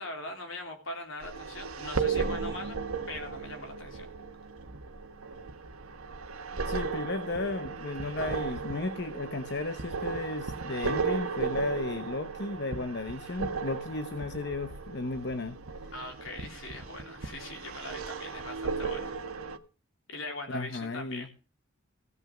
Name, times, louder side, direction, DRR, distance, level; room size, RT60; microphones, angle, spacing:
voice 1, 0.0-2.8 3.1-4.1 15.9-19.2 20.1-21.3, left 2 dB, 65° left, 4 dB, 3.5 m, -41 dB
sound 1, 1.2-19.6, right 5 dB, 85° right, 1.2 m, -35 dB
voice 2, 6.6-15.6 20.5-21.3, left 2 dB, 50° left, 10 dB, 0.9 m, -34 dB
16.0 x 6.2 x 7.2 m, 0.37 s
head